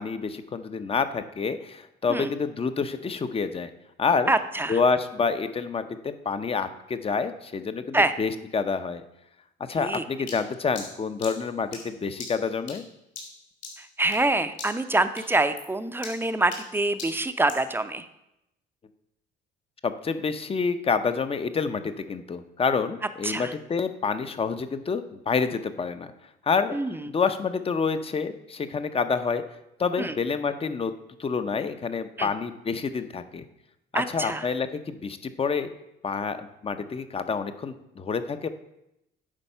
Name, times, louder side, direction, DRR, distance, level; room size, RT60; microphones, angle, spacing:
voice 1, 0.0-3.7 4.0-4.3 4.7-9.0 9.7-12.8 19.8-26.1 26.5-26.8 27.1-29.4 29.8-30.9 31.2-33.4 33.9-35.7 36.0-38.5, left 5 dB, 30° left, 10 dB, 0.7 m, -28 dB
voice 2, 4.3-4.8 7.9-8.1 9.8-10.0 14.0-18.1 23.2-23.5 26.7-27.0 30.0-30.1 32.2-32.3 33.9-34.5, right 2 dB, 10° right, 10 dB, 0.6 m, -25 dB
sound 1, 10.3-14.3 14.6-14.9 15.2-17.7, left 4 dB, 65° left, 2.9 m, -42 dB
9.8 x 4.0 x 5.6 m, 0.85 s
cardioid pair, 95°, 20 cm